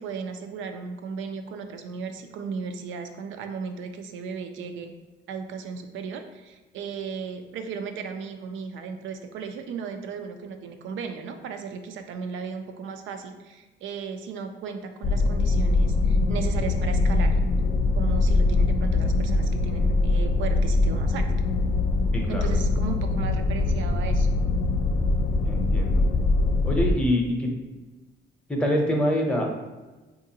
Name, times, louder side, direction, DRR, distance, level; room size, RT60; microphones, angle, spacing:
voice 1, 0.0-4.9 5.3-17.4 18.0-21.3 22.3-24.3, right 5 dB, 75° right, 7 dB, 0.4 m, -35 dB
sound 1, 15.0-26.9, left 2 dB, 50° left, 0.4 m, -23 dB
voice 2, 22.1-22.5 25.4-26.0 26.6-27.5 28.5-29.5, equal, 5° left, 0 dB, 0.7 m, -25 dB
3.7 x 2.5 x 2.8 m, 1.2 s
cardioid pair, 90°, 20 cm